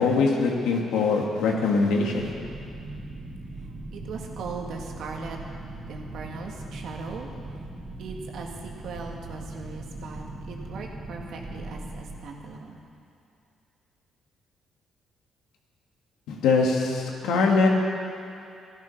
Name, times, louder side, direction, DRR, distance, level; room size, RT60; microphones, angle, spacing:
voice 1, 0.0-2.3 16.3-17.7, left 4 dB, 90° left, 0 dB, 1.9 m, -22 dB
sound 1, 2.2-12.2, right 2 dB, 30° right, 2.5 m, -39 dB
voice 2, 3.9-5.4 5.9-7.3 8.0-12.8, right 4 dB, 75° right, 1 dB, 1.9 m, -39 dB
14.0 x 12.5 x 5.8 m, 2.5 s
cardioid pair, 90°, 0 cm